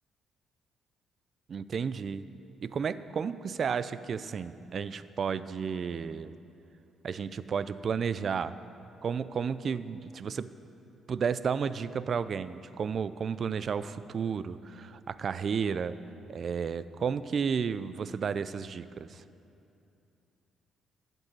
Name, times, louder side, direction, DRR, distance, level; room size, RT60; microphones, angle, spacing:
voice 1, 1.5-2.3 2.6-6.3 7.0-8.5 9.0-10.5 11.1-16.0 16.3-19.2, right 6 dB, 50° right, 15 dB, 0.4 m, -32 dB
14.0 x 5.4 x 7.5 m, 2.7 s
cardioid pair, 90°, 0 cm